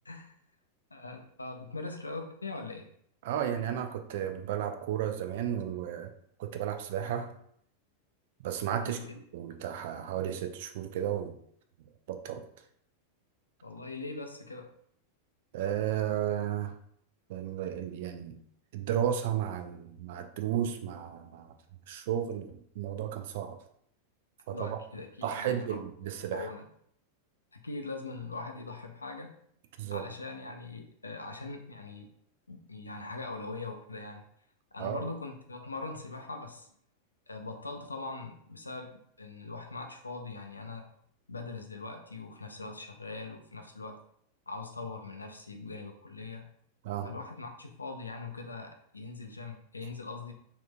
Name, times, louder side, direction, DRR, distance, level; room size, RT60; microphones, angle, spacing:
voice 1, 0.9-2.9 8.8-9.2 13.6-14.7 24.5-25.8 26.3-26.7 27.5-29.4 29.9-32.1 32.5-34.2 34.7-36.7 37.3-40.9 41.3-44.0 44.5-46.5 47.0-50.3, left 3 dB, 80° left, 4 dB, 0.4 m, -41 dB
voice 2, 3.2-6.1 6.4-7.3 8.4-11.3 12.1-12.4 15.5-16.7 17.3-18.4 18.7-21.5 21.9-23.6 24.5-24.8 25.2-26.5 29.8-30.0 34.8-35.0 46.8-47.1, right 10 dB, 55° right, 7 dB, 0.3 m, -33 dB
3.5 x 2.4 x 2.2 m, 0.67 s
figure-of-eight pair, 90°, 0 cm